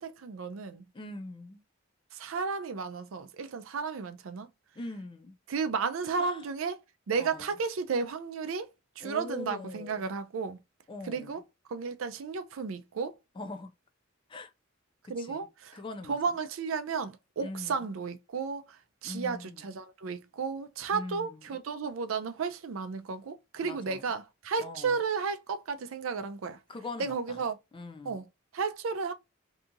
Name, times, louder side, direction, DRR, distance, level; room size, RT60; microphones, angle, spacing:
voice 1, 0.0-0.8 2.1-4.5 5.5-6.8 7.1-8.7 9.0-10.6 11.0-11.4 11.7-13.2 15.1-15.8 16.1-26.6 27.0-27.6 28.0-28.3 28.5-29.1, right 5 dB, 75° right, 0.4 m, -33 dB
voice 2, 0.9-1.6 4.8-5.4 6.2-6.5 7.2-7.5 9.0-10.1 10.9-11.4 13.4-13.7 14.3-14.5 15.0-15.5 15.7-16.2 17.4-17.9 19.0-19.6 20.9-21.4 23.6-24.1 24.6-25.0 26.7-27.4 27.7-28.2, left 2 dB, 25° left, 0.4 m, -42 dB
2.7 x 2.4 x 2.6 m
head